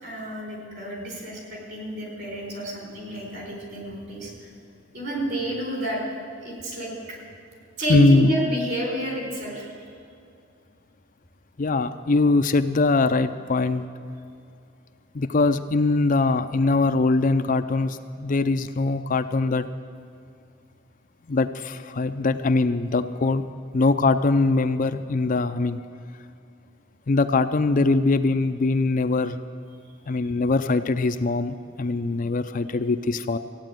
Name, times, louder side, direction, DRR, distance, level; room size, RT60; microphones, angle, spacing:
voice 1, 0.0-4.5 4.9-6.0 6.4-7.2 7.8-9.8, right 1 dB, 55° right, 0 dB, 4.3 m, -30 dB
voice 2, 7.9-8.3 11.6-13.9 15.1-19.6 21.3-23.4 23.7-25.8 27.1-29.4 30.1-33.4, left 3 dB, 45° left, 9 dB, 0.5 m, -22 dB
15.0 x 8.9 x 9.0 m, 2.5 s
head